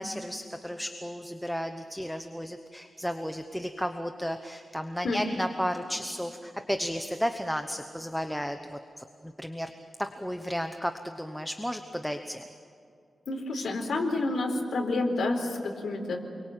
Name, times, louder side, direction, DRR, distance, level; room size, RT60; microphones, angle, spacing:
voice 1, 0.0-9.7 10.0-12.4, equal, ahead, 6 dB, 0.9 m, -33 dB
voice 2, 13.3-16.2, left 2 dB, 80° left, 1 dB, 4.2 m, -29 dB
29.0 x 23.0 x 8.9 m, 2.6 s
wide cardioid pair, 165°, 0 cm